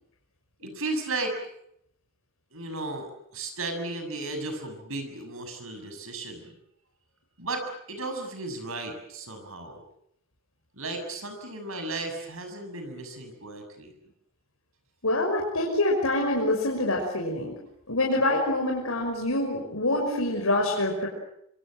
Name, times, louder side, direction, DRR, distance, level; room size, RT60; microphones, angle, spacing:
voice 1, 0.6-1.4 2.5-6.5 7.4-9.8 10.7-13.9, right 2 dB, 70° right, 6 dB, 6.8 m, -35 dB
voice 2, 15.0-17.5 17.9-21.1, left 1 dB, 80° left, -1 dB, 5.9 m, -26 dB
26.0 x 26.0 x 7.6 m, 0.74 s
head